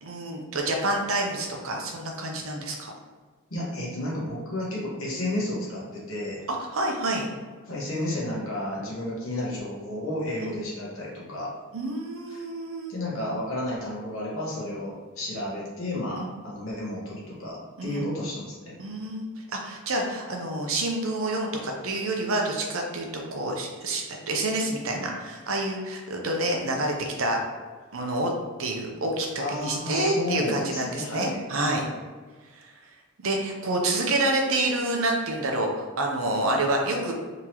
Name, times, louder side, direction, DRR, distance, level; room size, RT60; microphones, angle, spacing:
voice 1, 0.0-2.9 6.5-7.3 10.4-10.5 11.7-12.9 16.1-16.3 17.8-18.1 18.8-27.4 27.9-28.3 28.6-31.8 32.5-32.9 33.2-37.1, right 2 dB, 70° right, 1 dB, 0.7 m, -28 dB
voice 2, 3.5-6.4 7.7-11.5 12.3-12.4 12.9-18.7 29.4-31.4, left 1 dB, 70° left, -5 dB, 1.2 m, -32 dB
3.8 x 3.0 x 2.9 m, 1.4 s
head